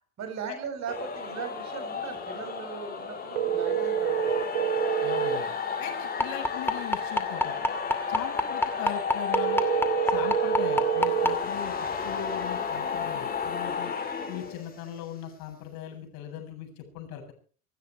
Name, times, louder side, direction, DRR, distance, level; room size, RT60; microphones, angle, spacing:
voice 1, 0.2-4.3, right 6 dB, 40° right, 6 dB, 6.9 m, -38 dB
sound 1, 0.9-15.0, left 6 dB, 20° left, 5.3 m, -33 dB
sound 2, 3.4-5.4 9.3-11.4, right 9 dB, 65° right, 2.1 m, -26 dB
voice 2, 5.0-5.5 5.8-7.6 8.1-9.6 10.1-11.7 12.0-13.9 14.3-17.3, left 10 dB, 55° left, 3 dB, 7.9 m, -39 dB
sound 3, 6.2-11.3 12.3-12.4 12.8-12.9 13.4-13.5, left 1 dB, 5° left, 2.5 m, -24 dB
28.0 x 9.5 x 4.7 m, 0.42 s
hypercardioid pair, 90°, 42 cm